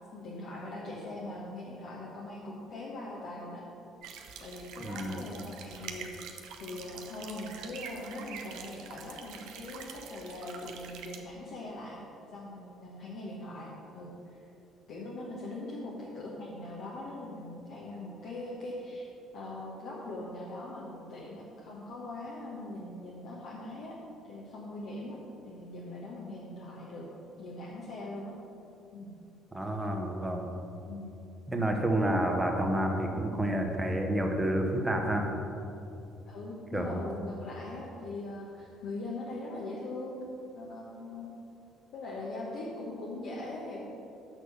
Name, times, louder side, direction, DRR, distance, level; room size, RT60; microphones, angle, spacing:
voice 1, 0.1-3.6 4.4-12.0 12.3-13.7 13.9-14.5 14.9-19.1 19.3-24.0 24.2-25.2 25.4-27.1 27.4-28.4 28.9-29.1 30.9-31.1 36.3-40.2 40.5-41.3 41.9-43.8, left 2 dB, 60° left, -5 dB, 1.2 m, -41 dB
sound 1, 4.0-11.2, right 6 dB, 65° right, 0.7 m, -46 dB
voice 2, 4.8-5.2 29.5-30.5 31.5-35.3 36.7-37.1, right 1 dB, 15° right, 2 dB, 1.2 m, -29 dB
6.3 x 6.1 x 6.7 m, 2.7 s
figure-of-eight pair, 50°, 0 cm